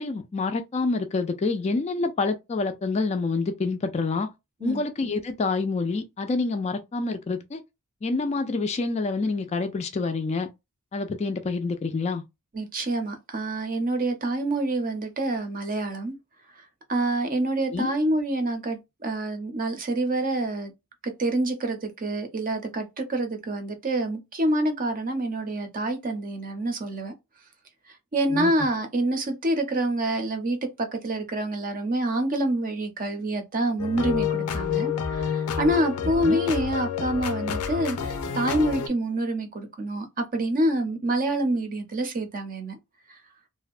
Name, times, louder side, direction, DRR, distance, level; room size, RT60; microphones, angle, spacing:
voice 1, 0.0-4.3 4.6-7.6 8.0-10.5 10.9-12.2 17.7-17.9 28.3-28.5 36.2-36.4, left 3 dB, 30° left, 0.3 m, -27 dB
voice 2, 12.5-16.2 16.9-20.7 21.0-27.1 28.1-38.0 38.3-42.8, right 1 dB, 40° right, 0.6 m, -27 dB
sound 1, 33.8-38.9, left 7 dB, 90° left, 0.4 m, -28 dB
2.6 x 2.1 x 2.4 m
head